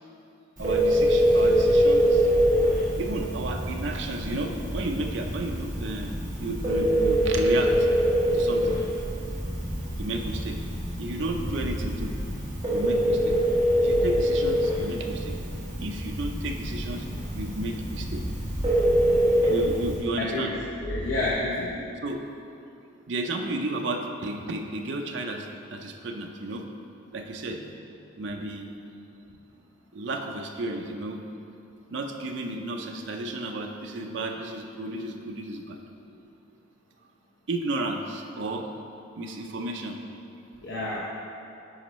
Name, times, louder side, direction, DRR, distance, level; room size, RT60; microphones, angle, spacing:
Telephone, 0.6-20.0, equal, 15° right, 1.5 m, -25 dB
voice 1, 0.6-2.3 3.0-7.9 8.3-8.8 10.0-10.6 11.0-12.1 12.7-13.4 13.8-17.1 17.3-18.2 19.5-20.5 22.0-22.3 23.1-26.7 27.1-27.8 28.2-28.7 29.9-31.2 31.9-35.8 37.5-38.7 39.2-40.0, right 2 dB, 60° right, 3 dB, 0.5 m, -33 dB
sound 1, 2.0-3.5 4.3-6.0 6.6-8.3 9.0-10.5 11.2-13.0 13.5-15.1 15.9-17.6 18.1-19.9 20.4-21.3, equal, ahead, 0.6 m, -39 dB
voice 2, 20.2-21.9 40.6-41.0, left 2 dB, 60° left, -6 dB, 0.8 m, -29 dB
8.7 x 5.2 x 3.1 m, 2.6 s
head